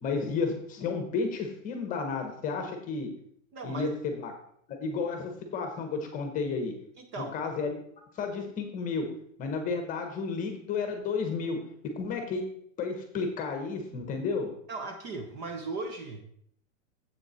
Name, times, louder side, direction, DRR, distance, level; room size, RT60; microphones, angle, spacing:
voice 1, 0.0-3.1 3.6-4.3 4.7-6.7 7.3-7.7 8.2-9.1 9.4-11.6 12.0-12.4 12.8-14.5, left 4 dB, 20° left, 5 dB, 1.1 m, -32 dB
voice 2, 3.5-3.9 7.0-7.4 14.7-16.2, right 3 dB, 30° right, 5 dB, 0.8 m, -37 dB
7.9 x 6.5 x 4.3 m, 0.66 s
hypercardioid pair, 150°, 39 cm